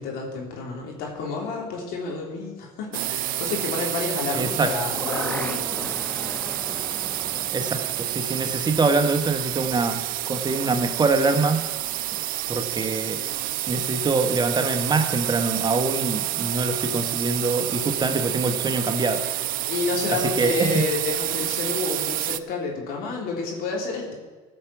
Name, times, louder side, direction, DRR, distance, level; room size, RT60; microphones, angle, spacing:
voice 1, 0.0-5.9 6.3-6.6 19.6-24.1, left 4 dB, 65° left, -1 dB, 3.4 m, -30 dB
sound 1, 2.9-22.4, right 14 dB, 60° right, 0.6 m, -29 dB
voice 2, 4.3-4.7 7.5-10.0 10.3-11.6 12.5-13.2 13.7-19.2 20.1-20.8, right 3 dB, 25° right, 7 dB, 1.3 m, -24 dB
sound 2, 4.4-10.3 10.7-10.8, left 1 dB, 5° left, 1.0 m, -38 dB
16.0 x 6.1 x 5.9 m, 1.4 s
hypercardioid pair, 75°, 16 cm